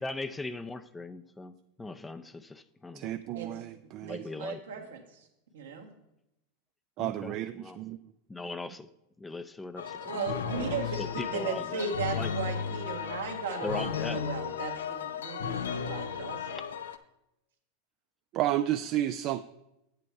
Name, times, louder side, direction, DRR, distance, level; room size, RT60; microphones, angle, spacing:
voice 1, 0.0-1.5 1.8-3.1 4.0-4.9 7.0-7.8 8.3-8.9 9.2-10.2 11.0-12.3 13.6-14.4 16.5-16.6, left 2 dB, 10° left, 12 dB, 0.5 m, -39 dB
voice 2, 2.9-4.3 7.0-8.0 10.5-10.8 18.3-19.4, right 13 dB, 50° right, 10 dB, 0.4 m, -32 dB
voice 3, 4.1-5.3 5.5-5.9 10.0-16.6, right 5 dB, 80° right, 2 dB, 1.7 m, -37 dB
sound 1, 9.8-17.0, left 7 dB, 80° left, 0.6 m, -35 dB
8.4 x 7.8 x 4.6 m, 0.87 s
hypercardioid pair, 95°, 0 cm